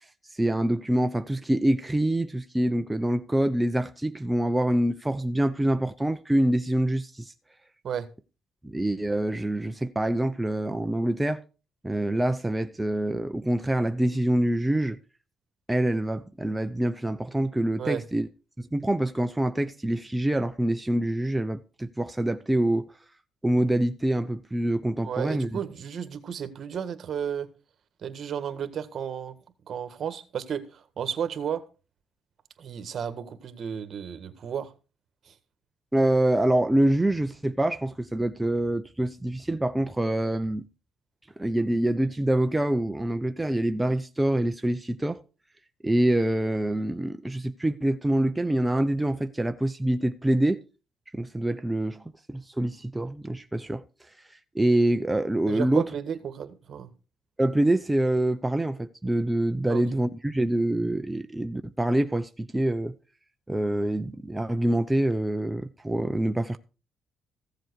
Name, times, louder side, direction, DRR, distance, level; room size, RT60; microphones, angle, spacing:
voice 1, 0.3-7.3 8.6-11.4 11.8-15.0 15.7-18.3 18.6-22.9 23.4-25.5 35.9-40.7 41.4-45.2 45.8-50.6 51.1-53.8 54.5-55.9 57.4-62.9 63.5-66.6, right 1 dB, 10° right, 0.7 m, -25 dB
voice 2, 25.0-27.5 28.0-29.4 29.7-31.6 32.6-34.7 35.2-35.3 55.5-56.9 59.7-59.8, right 8 dB, 60° right, 1.7 m, -33 dB
15.0 x 7.7 x 4.7 m
cardioid pair, 90°, 0 cm